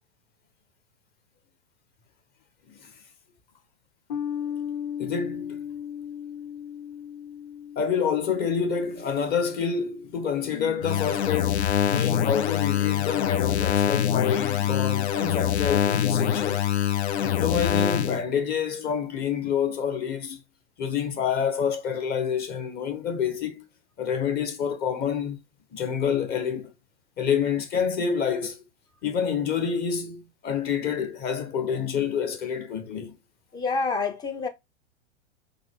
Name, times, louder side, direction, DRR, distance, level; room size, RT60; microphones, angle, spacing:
sound 1, 4.1-10.8, left 9 dB, 45° left, 1.3 m, -37 dB
voice 1, 5.0-5.6 7.8-16.7 17.2-20.4 20.8-23.7 24.0-25.4 25.7-26.7 27.2-28.6 29.0-33.1, left 7 dB, 30° left, 0.9 m, -28 dB
sound 2, 10.8-18.2, left 10 dB, 75° left, 0.6 m, -24 dB
voice 2, 33.5-34.5, left 4 dB, 15° left, 0.4 m, -28 dB
3.7 x 2.4 x 3.5 m
hypercardioid pair, 105°, 34 cm